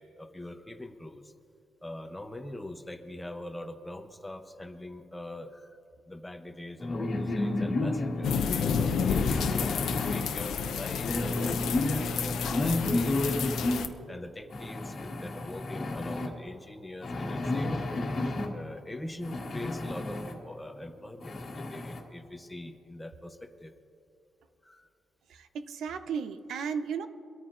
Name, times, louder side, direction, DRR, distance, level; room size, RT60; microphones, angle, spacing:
voice 1, 0.0-1.3 1.8-5.8 6.1-13.4 13.7-17.8 18.5-23.7 24.6-24.9, left 1 dB, 5° left, 6 dB, 0.7 m, -43 dB
sound 1, 6.8-8.3 9.1-10.2 10.9-13.8 14.5-16.3 17.0-18.5 19.2-20.3 20.8-20.9 21.2-22.0, left 2 dB, 35° left, 1.6 m, -31 dB
sound 2, 8.2-13.9, left 6 dB, 70° left, 0.7 m, -30 dB
voice 2, 25.3-27.1, right 6 dB, 70° right, 10 dB, 0.7 m, -34 dB
24.0 x 13.5 x 2.6 m, 2.8 s
cardioid pair, 170°, 0 cm